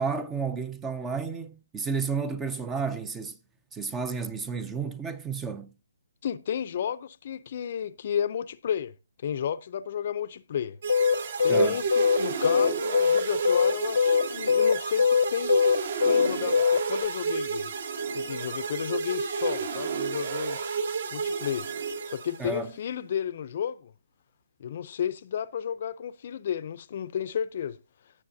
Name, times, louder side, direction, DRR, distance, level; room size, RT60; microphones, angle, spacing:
voice 1, 0.0-3.4 3.7-5.7 11.5-11.8 22.4-22.7, right 5 dB, 10° right, 0.5 m, -31 dB
voice 2, 6.2-8.9 9.2-10.8 11.4-15.5 16.0-17.7 18.1-20.6 21.1-21.7 22.1-23.9 24.6-27.8, left 8 dB, 45° left, 0.5 m, -32 dB
sound 1, 10.8-22.7, right 4 dB, 50° right, 1.4 m, -31 dB
sound 2, 10.9-17.1, left 6 dB, 90° left, 0.9 m, -22 dB
16.5 x 7.0 x 2.7 m
hypercardioid pair, 165°, 0 cm